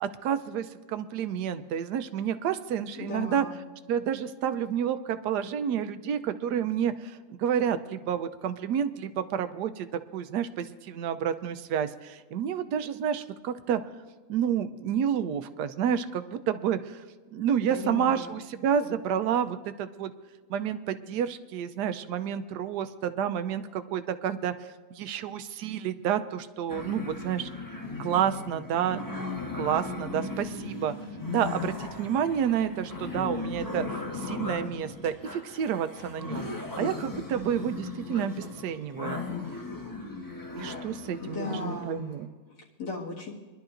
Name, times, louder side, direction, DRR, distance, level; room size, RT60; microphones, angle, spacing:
voice 1, 0.0-3.4 3.9-9.9 10.1-13.8 14.3-17.0 17.3-20.1 20.5-24.5 25.0-27.5 28.0-29.0 29.5-30.9 31.3-36.5 36.8-39.2 40.6-42.3, right 8 dB, 90° right, 11 dB, 1.2 m, -29 dB
voice 2, 3.0-3.6 17.7-18.3 41.2-42.2 42.5-43.3, left 3 dB, 85° left, -6 dB, 2.5 m, -37 dB
sound 1, 26.7-42.0, left 3 dB, 15° left, 1.0 m, -37 dB
24.5 x 11.5 x 2.5 m, 1.3 s
omnidirectional pair, 1.7 m